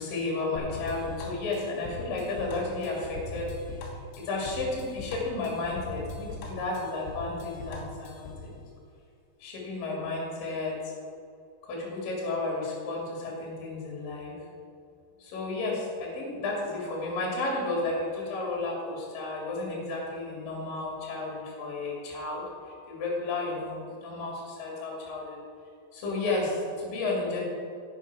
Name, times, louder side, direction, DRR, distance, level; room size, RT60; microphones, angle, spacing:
voice 1, 0.0-3.9 4.2-8.5 9.4-10.9 11.6-14.3 15.2-25.4 25.9-27.4, left 2 dB, 50° left, -3 dB, 3.4 m, -32 dB
sound 1, 0.6-8.5, left 3 dB, 70° left, 2.9 m, -40 dB
11.0 x 9.0 x 4.7 m, 2.5 s
omnidirectional pair, 5.7 m